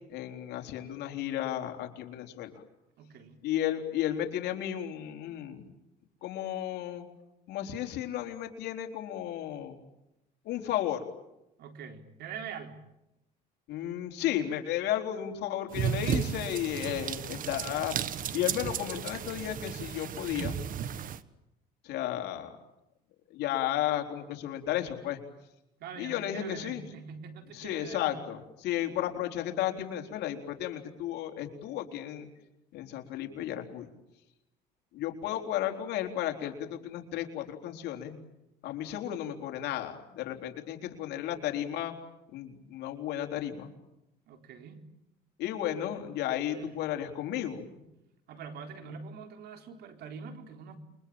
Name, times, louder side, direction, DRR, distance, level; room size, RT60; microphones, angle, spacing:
voice 1, 0.1-2.6 3.4-5.7 6.2-7.1 7.5-9.8 10.4-11.0 13.7-17.9 18.3-20.6 21.8-22.5 23.3-25.2 26.0-26.8 27.5-32.3 32.7-33.9 34.9-38.2 38.6-41.9 42.3-43.7 45.4-47.7, left 12 dB, 80° left, 4 dB, 4.0 m, -33 dB
voice 2, 3.0-3.4 11.6-12.8 25.8-28.2 44.3-44.8 46.5-46.7 48.3-50.8, right 6 dB, 75° right, 6 dB, 4.1 m, -44 dB
sound 1, 15.7-21.2, right 9 dB, 55° right, 1.4 m, -34 dB
28.5 x 24.0 x 8.8 m, 0.89 s
cardioid pair, 110°, 17 cm